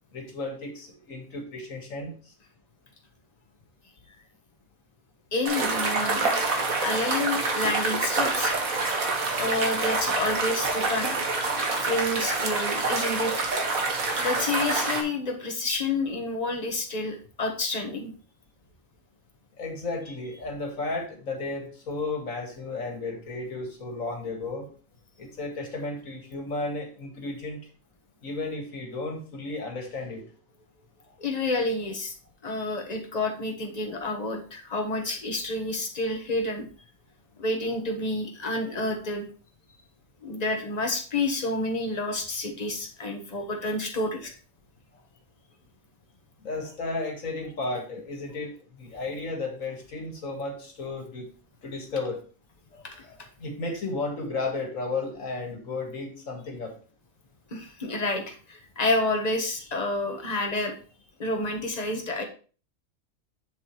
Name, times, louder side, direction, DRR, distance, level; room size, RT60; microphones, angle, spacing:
voice 1, 0.1-2.1 19.6-24.7 25.2-27.6 28.2-30.2 46.4-48.5 48.8-51.3 51.6-52.2 53.4-56.7, left 3 dB, 70° left, 2 dB, 2.3 m, -33 dB
voice 2, 5.3-6.5 6.8-8.5 9.4-11.2 11.8-13.5 14.2-18.1 31.2-32.1 32.4-36.6 37.4-39.2 40.2-44.3 52.9-53.3 57.5-60.7 61.2-62.2, left 2 dB, 30° left, 3 dB, 1.4 m, -29 dB
sound 1, 5.5-15.0, right 3 dB, 80° right, 1.9 m, -27 dB
7.4 x 6.9 x 3.1 m, 0.38 s
omnidirectional pair, 1.4 m